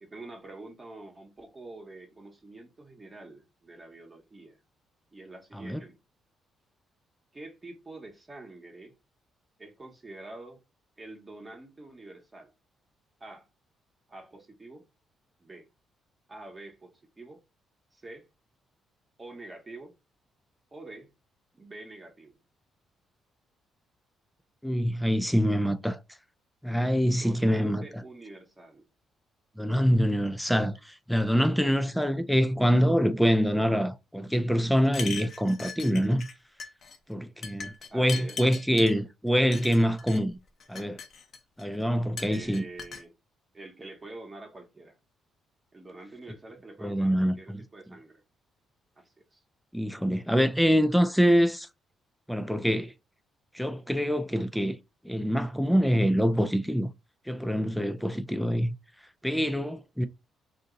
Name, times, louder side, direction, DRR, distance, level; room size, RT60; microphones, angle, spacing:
voice 1, 0.0-4.6 5.1-6.0 7.3-8.9 9.6-10.6 11.0-12.5 13.2-13.5 14.1-14.8 15.4-15.7 16.3-17.4 17.9-18.3 19.2-19.9 20.7-21.1 21.5-22.4 27.1-28.9 37.9-38.4 38.7-39.0 42.3-43.1 43.5-45.0 45.7-48.2 49.0-49.4, right 2 dB, 25° right, 1.0 m, -46 dB
voice 2, 24.6-26.0 26.6-27.8 29.6-36.3 37.1-40.4 40.7-41.0 41.6-42.6 46.8-47.6 49.7-51.7 52.3-52.9 53.5-54.8 55.0-56.9 57.3-58.7 59.2-60.1, equal, ahead, 0.4 m, -25 dB
sound 1, 34.8-36.3 36.6-37.0 37.4-38.9 39.5-40.2 40.6-41.6 42.2-43.0, left 6 dB, 55° left, 0.8 m, -39 dB
2.7 x 2.6 x 3.7 m
cardioid pair, 90°, 0 cm